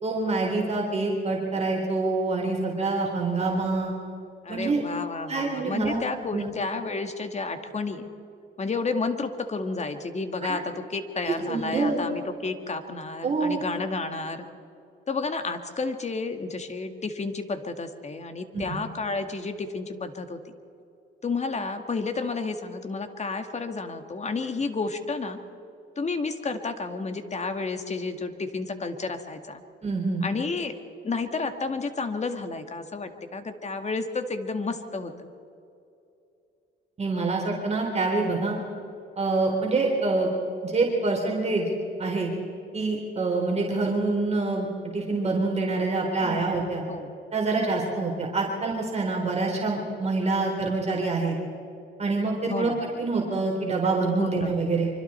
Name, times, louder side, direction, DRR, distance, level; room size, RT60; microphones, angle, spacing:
voice 1, 0.0-3.9 4.5-4.8 5.3-6.0 6.3-6.5 10.4-10.6 11.5-12.0 13.2-13.6 18.5-18.8 29.8-30.2 37.0-38.6 39.2-40.3 40.6-41.7 42.0-42.3 42.7-46.8 47.3-51.4 52.0-52.7 53.0-54.9, right 3 dB, 35° right, -1 dB, 3.9 m, -26 dB
voice 2, 4.4-8.1 8.6-14.4 15.1-20.4 21.2-25.4 26.0-29.6 30.2-30.7 31.0-35.3 46.2-46.6 46.9-47.1 52.5-52.8 54.2-54.5, left 3 dB, 35° left, 7 dB, 1.9 m, -31 dB
25.5 x 25.0 x 4.4 m, 2.6 s
cardioid pair, 90°, 20 cm